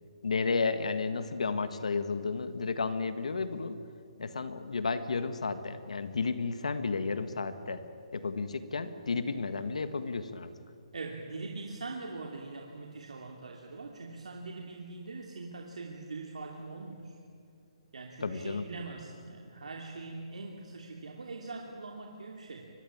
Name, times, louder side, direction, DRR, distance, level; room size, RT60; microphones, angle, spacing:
voice 1, 0.2-3.8 4.2-7.8 8.1-10.5 18.2-18.7, left 4 dB, 90° left, 10 dB, 1.8 m, -32 dB
voice 2, 10.9-17.2 17.9-22.7, right 3 dB, 90° right, 0 dB, 2.8 m, -42 dB
24.0 x 20.0 x 8.8 m, 2.4 s
hypercardioid pair, 160°, 4 cm